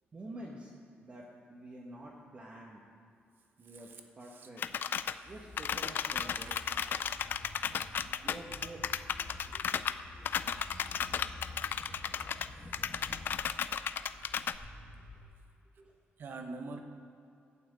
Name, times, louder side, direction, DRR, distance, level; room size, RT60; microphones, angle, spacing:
voice 1, 0.1-2.8 3.6-4.6 5.2-6.7 8.0-8.9 9.5-10.0 11.7-11.8 14.3-14.5 15.8-16.0, right 1 dB, 30° right, -3 dB, 1.1 m, -49 dB
voice 2, 3.6-4.5 5.1-5.3 6.4-6.7 7.4-7.6 8.1-8.2 11.7-11.8 12.6-13.2 14.0-14.7 16.2-16.8, right 3 dB, 55° right, 6 dB, 1.0 m, -48 dB
sound 1, 4.6-5.1 5.6-12.5 12.7-14.6, left 8 dB, 55° left, 0.3 m, -34 dB
Train, 5.2-15.2, left 2 dB, 25° left, 1.2 m, -50 dB
11.5 x 5.9 x 8.2 m, 2.5 s
cardioid pair, 140°, 4 cm